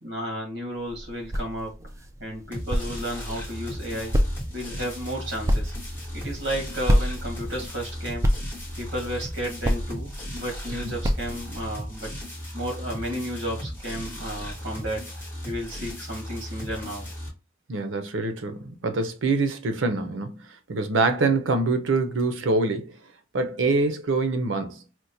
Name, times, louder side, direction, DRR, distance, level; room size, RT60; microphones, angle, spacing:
voice 1, 0.0-1.8 2.2-4.2 4.5-5.7 6.1-8.3 8.8-12.1 12.5-15.1 15.4-17.1, equal, 60° right, 1.6 m, -33 dB
sound 1, 0.7-11.7, equal, 15° right, 0.3 m, -29 dB
sound 2, 2.5-17.3, equal, 10° left, 1.0 m, -36 dB
voice 2, 17.7-20.4 20.7-22.9 23.3-24.8, right 3 dB, 80° right, 0.6 m, -25 dB
4.4 x 2.1 x 2.7 m
head